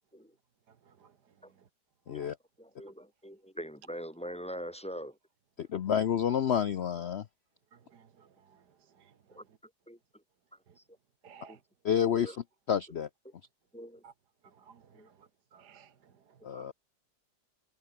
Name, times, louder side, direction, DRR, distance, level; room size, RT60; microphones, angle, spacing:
voice 1, 0.7-1.7 2.1-2.3 7.7-9.6 10.7-10.8 11.2-11.6 14.0-14.1 14.4-16.6, right 7 dB, 65° right, 1.9 m, -59 dB
voice 2, 2.6-5.2 9.3-9.4 9.9-10.0 11.5-11.6 12.1-12.4 13.7-14.0 14.9-15.1 16.5-16.7, equal, 5° left, 1.8 m, -43 dB
voice 3, 5.6-7.2 11.8-12.4 12.7-13.1 16.4-16.7, left 8 dB, 80° left, 0.5 m, -29 dB
omnidirectional pair, 1.9 m